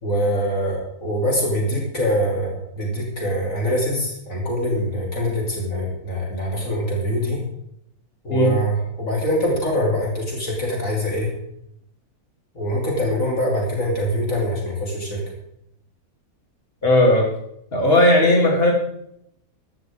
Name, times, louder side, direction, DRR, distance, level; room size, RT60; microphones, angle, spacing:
voice 1, 0.0-7.4 8.2-11.3 12.5-15.2, equal, 55° left, -1 dB, 3.3 m, -24 dB
voice 2, 16.8-17.3 17.7-18.7, left 1 dB, 35° left, -1 dB, 3.3 m, -16 dB
15.0 x 13.0 x 3.6 m, 0.75 s
omnidirectional pair, 1.6 m